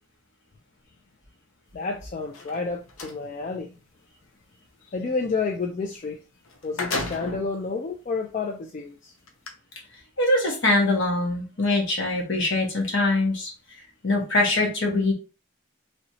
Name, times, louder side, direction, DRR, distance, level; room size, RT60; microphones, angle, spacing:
voice 1, 1.7-3.8 4.9-6.2 6.6-9.1, left 4 dB, 35° left, 0.3 m, -30 dB
sound 1, 2.2-3.2 6.0-6.1 6.4-7.5 8.2-8.3 9.3-9.5, left 3 dB, 85° left, 0.7 m, -32 dB
voice 2, 10.2-13.5 14.0-15.1, left 2 dB, 65° left, 1.2 m, -23 dB
3.1 x 2.9 x 2.7 m
head